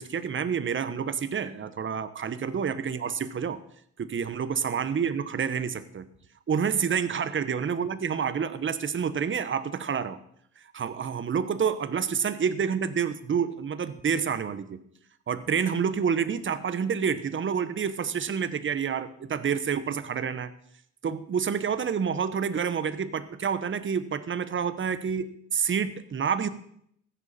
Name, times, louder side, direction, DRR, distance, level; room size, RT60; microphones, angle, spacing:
voice 1, 0.0-3.6 4.0-6.1 6.5-10.2 10.7-14.8 15.3-20.5 21.0-26.5, right 7 dB, 40° right, 13 dB, 1.1 m, -28 dB
15.0 x 10.5 x 4.3 m, 0.69 s
cardioid pair, 90°, 30 cm